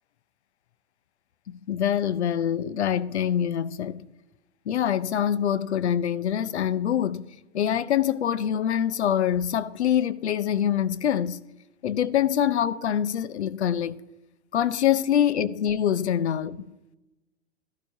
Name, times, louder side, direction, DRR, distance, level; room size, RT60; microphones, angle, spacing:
voice 1, 1.5-4.1 4.7-7.3 7.5-11.4 11.8-14.0 14.5-16.6, left 9 dB, 85° left, 0.6 m, -25 dB
15.5 x 11.5 x 2.7 m
hypercardioid pair, 115°, 33 cm